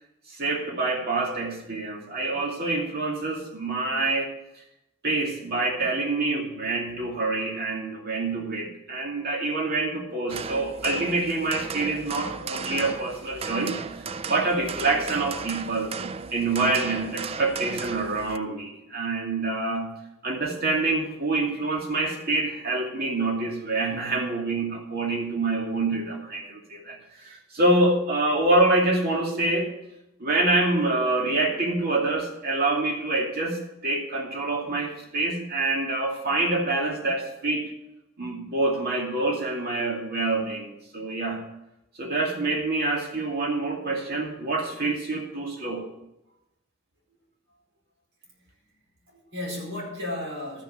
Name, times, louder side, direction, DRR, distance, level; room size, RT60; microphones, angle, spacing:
voice 1, 0.3-4.3 5.0-15.9 16.3-19.9 20.2-29.7 30.2-37.7 38.2-41.4 42.0-45.9, right 2 dB, 50° right, 0 dB, 2.4 m, -26 dB
sound 1, 10.3-18.4, right 5 dB, 30° right, 0.4 m, -35 dB
voice 2, 48.3-48.7 49.0-50.6, left 1 dB, 85° right, -3 dB, 4.6 m, -35 dB
13.5 x 6.0 x 6.6 m, 0.87 s
head